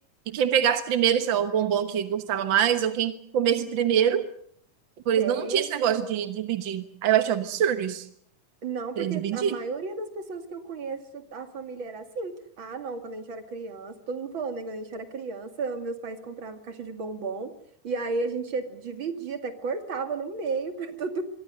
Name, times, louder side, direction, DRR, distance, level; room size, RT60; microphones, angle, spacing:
voice 1, 0.3-4.3 5.1-8.1 9.0-9.6, right 9 dB, 60° right, 9 dB, 1.2 m, -24 dB
voice 2, 5.2-6.3 8.6-17.5 17.8-21.2, right 4 dB, 40° right, 7 dB, 2.6 m, -33 dB
25.5 x 22.5 x 6.7 m, 0.63 s
omnidirectional pair, 3.8 m